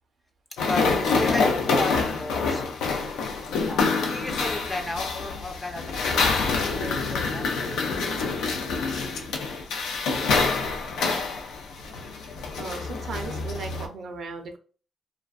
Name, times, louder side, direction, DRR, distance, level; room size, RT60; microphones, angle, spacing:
sound 1, 0.6-13.9, left 4 dB, 85° left, 0.4 m, -26 dB
voice 1, 0.6-2.7 3.7-7.8, left 2 dB, 20° left, 4 dB, 0.5 m, -34 dB
voice 2, 12.6-14.6, right 4 dB, 60° right, 4 dB, 0.5 m, -36 dB
2.5 x 2.1 x 2.3 m, 0.39 s
cardioid pair, 90°, 0 cm